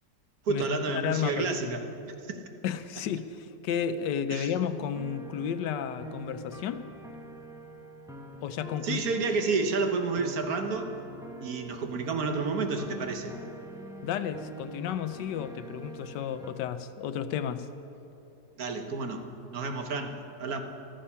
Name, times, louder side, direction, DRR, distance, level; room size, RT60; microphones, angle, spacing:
voice 1, 0.4-1.8 2.2-2.4 4.3-4.5 8.8-10.9 11.4-13.3 18.6-20.6, right 4 dB, 60° right, 6 dB, 1.4 m, -30 dB
voice 2, 1.0-1.7 2.6-6.9 8.4-9.0 14.0-17.7, left 8 dB, 85° left, 12 dB, 1.3 m, -32 dB
sound 1, 4.9-16.5, right 1 dB, 5° right, 0.7 m, -45 dB
14.0 x 13.0 x 5.6 m, 2.9 s
omnidirectional pair, 1.8 m